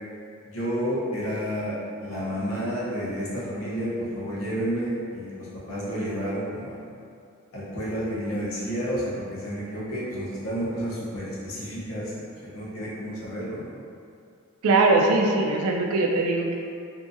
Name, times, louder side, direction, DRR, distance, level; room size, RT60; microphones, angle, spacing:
voice 1, 0.4-6.9 7.5-12.1 12.4-13.8, equal, 70° left, -8 dB, 0.8 m, -30 dB
voice 2, 14.6-16.6, right 3 dB, 75° right, 1 dB, 0.4 m, -21 dB
2.7 x 2.4 x 2.5 m, 2.4 s
head